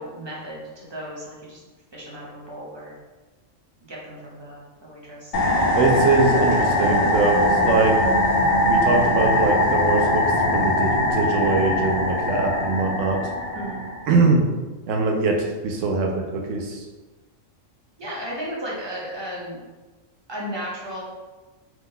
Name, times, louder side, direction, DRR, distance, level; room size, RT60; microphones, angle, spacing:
voice 1, 0.0-1.6 1.9-3.0 3.9-5.3 13.5-13.8 18.0-19.6 20.3-21.0, equal, 30° right, -5 dB, 0.5 m, -34 dB
sound 1, 5.3-14.2, left 1 dB, 85° left, 0.4 m, -21 dB
voice 2, 5.7-7.9 8.7-10.2 10.5-13.2 14.1-14.4 14.9-16.8, right 3 dB, 70° right, 1 dB, 0.9 m, -22 dB
2.9 x 2.2 x 3.6 m, 1.2 s
omnidirectional pair, 1.4 m